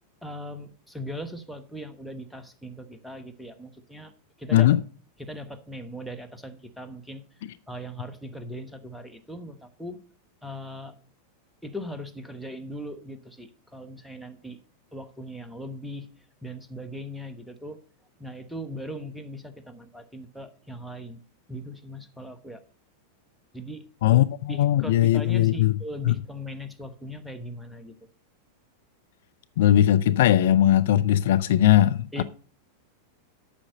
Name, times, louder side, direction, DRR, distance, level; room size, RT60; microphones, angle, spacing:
voice 1, 0.2-4.1 4.4-4.7 5.2-7.2 7.7-10.0 10.4-11.0 11.6-14.6 14.9-16.1 16.4-17.8 18.2-21.2 21.5-22.6 23.5-23.8 24.1-27.9 32.1-32.2, equal, ahead, 1.1 m, -39 dB
voice 2, 24.0-25.7 26.0-26.1 29.6-32.2, left 12 dB, 55° left, 0.4 m, -19 dB
8.5 x 6.3 x 6.6 m
figure-of-eight pair, 90°, 0 cm